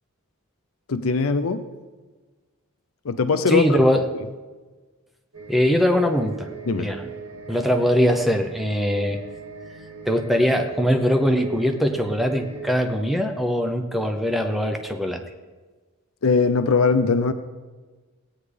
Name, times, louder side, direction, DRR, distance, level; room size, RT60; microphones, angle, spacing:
voice 1, 0.9-1.6 3.0-3.8 6.7-6.9 16.2-17.3, left 4 dB, 70° left, 10 dB, 0.6 m, -20 dB
voice 2, 3.5-4.0 5.5-6.5 6.8-7.1 7.5-9.2 10.1-15.2, equal, ahead, 4 dB, 0.7 m, -21 dB
sound 1, 5.3-12.9, right 5 dB, 75° right, 2.0 m, -39 dB
17.5 x 9.6 x 3.4 m, 1.3 s
head